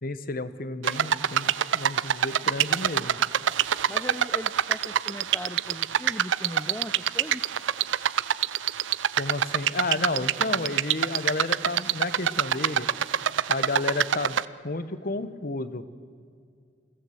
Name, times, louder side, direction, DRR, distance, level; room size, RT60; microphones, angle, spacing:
voice 1, 0.0-3.2 9.2-12.9 13.5-15.8, left 2 dB, 50° left, 13 dB, 1.0 m, -32 dB
sound 1, 0.8-14.4, right 9 dB, 80° right, 0.5 m, -25 dB
voice 2, 3.9-7.4, left 1 dB, 10° left, 12 dB, 0.5 m, -38 dB
22.0 x 16.0 x 7.8 m, 2.2 s
head